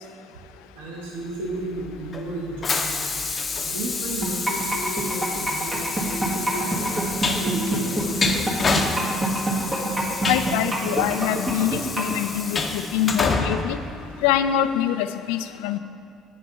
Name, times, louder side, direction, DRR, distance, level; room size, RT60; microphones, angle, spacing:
voice 1, 0.7-3.1 3.6-8.9 9.6-10.3, right 2 dB, 90° right, -4 dB, 1.1 m, -34 dB
Train, 1.5-14.7, left 4 dB, 40° left, 0.7 m, -29 dB
sound 1, 4.2-12.2, right 1 dB, 35° right, 1.7 m, -26 dB
voice 2, 10.2-13.8 14.2-15.8, left 11 dB, 85° left, 11 dB, 0.3 m, -24 dB
7.4 x 4.4 x 5.6 m, 2.6 s
supercardioid pair, 65°, 0 cm